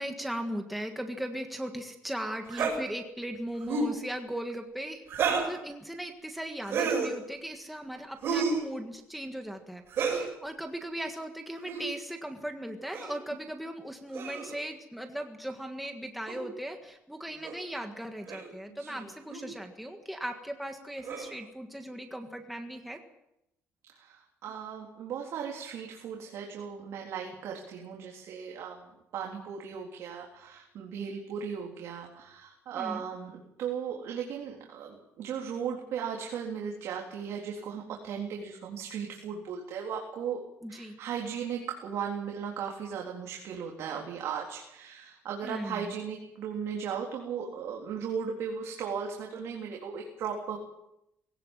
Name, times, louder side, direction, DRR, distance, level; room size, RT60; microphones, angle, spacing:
voice 1, 0.0-23.0 32.7-33.0 40.6-41.0 45.4-46.0, right 1 dB, ahead, 3 dB, 1.7 m, -38 dB
sound 1, 2.5-2.8 3.6-4.0 5.1-5.6 6.6-7.1 8.2-8.6 9.9-10.3 11.6-11.9 12.9-13.2 14.1-14.6 16.3-16.4 17.4-17.6 18.3-18.5 19.3-19.5 21.0-21.4, right 5 dB, 50° right, 7.2 m, -30 dB
voice 2, 18.8-19.1 24.0-28.8 29.1-40.4 40.7-50.6, right 7 dB, 65° right, -1 dB, 3.7 m, -37 dB
21.0 x 18.0 x 7.5 m, 0.83 s
cardioid pair, 150°, 5 cm